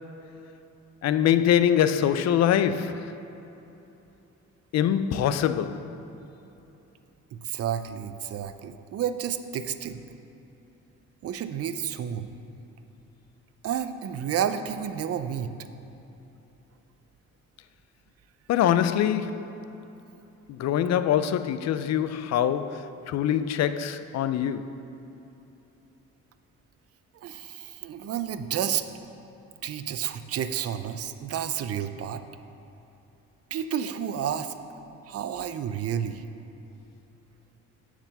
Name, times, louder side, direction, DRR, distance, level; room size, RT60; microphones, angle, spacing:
voice 1, 1.0-3.2 4.7-5.9 18.5-19.5 20.5-24.7, left 10 dB, 60° left, 0.4 m, -24 dB
voice 2, 7.3-10.0 11.2-12.3 13.6-15.5 27.1-28.8 29.6-32.2 33.5-34.5 35.1-36.3, right 9 dB, 50° right, 0.5 m, -31 dB
7.1 x 4.9 x 6.8 m
cardioid pair, 90°, 30 cm